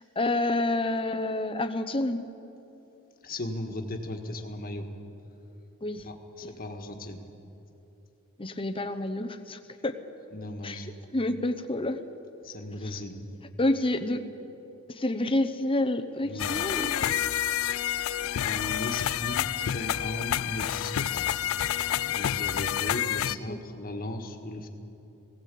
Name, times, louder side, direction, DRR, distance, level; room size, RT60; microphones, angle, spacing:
voice 1, 0.0-2.2 5.8-6.0 6.4-6.7 8.4-9.9 10.6-10.8 11.1-12.0 13.6-14.2 14.9-17.1 23.3-23.6, left 2 dB, 25° left, 9 dB, 0.9 m, -28 dB
voice 2, 3.2-4.9 6.0-7.2 10.3-10.9 12.4-13.2 16.2-16.5 18.2-21.3 22.1-24.7, left 1 dB, 45° left, 4 dB, 1.7 m, -37 dB
sound 1, 16.4-23.4, left 11 dB, 65° left, 0.4 m, -29 dB
18.0 x 17.5 x 8.5 m, 3.0 s
head